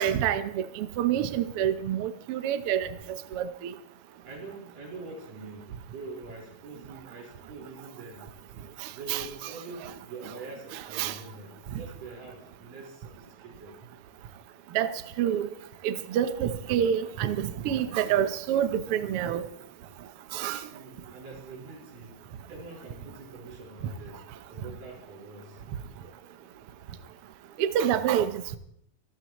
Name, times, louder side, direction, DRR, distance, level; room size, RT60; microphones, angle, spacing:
voice 1, 0.0-3.7 8.8-9.5 9.8-9.9 10.2-10.3 10.7-11.2 14.7-14.9 15.2-15.5 15.8-19.4 20.3-20.6 27.6-28.6, right 10 dB, 85° right, 1.2 m, -28 dB
voice 2, 4.2-8.3 8.9-13.9 20.7-25.9, right 3 dB, 70° right, 6.5 m, -45 dB
26.0 x 13.5 x 3.1 m
omnidirectional pair, 4.0 m